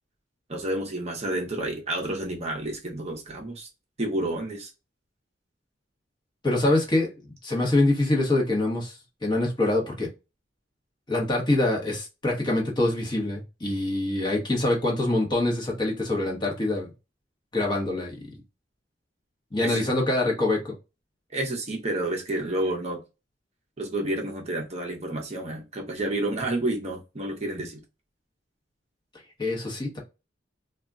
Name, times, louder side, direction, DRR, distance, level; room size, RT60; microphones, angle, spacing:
voice 1, 0.5-3.7 4.0-4.7 19.6-19.8 21.3-23.0 23.8-27.8, right 1 dB, 35° right, 0.6 m, -30 dB
voice 2, 6.4-7.1 7.4-10.1 11.1-16.9 17.5-18.1 19.5-20.7 29.4-30.0, left 2 dB, 25° left, 0.8 m, -25 dB
2.3 x 2.1 x 3.6 m
head